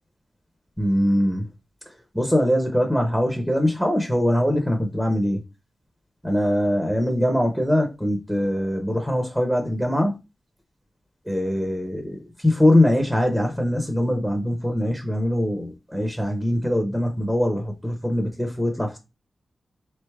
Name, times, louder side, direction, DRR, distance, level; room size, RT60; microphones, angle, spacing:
voice 1, 0.8-1.5 1.9-5.4 6.2-10.1 11.3-19.0, left 1 dB, ahead, 0.7 m, -22 dB
3.7 x 3.3 x 3.4 m
wide cardioid pair, 85°, 0 cm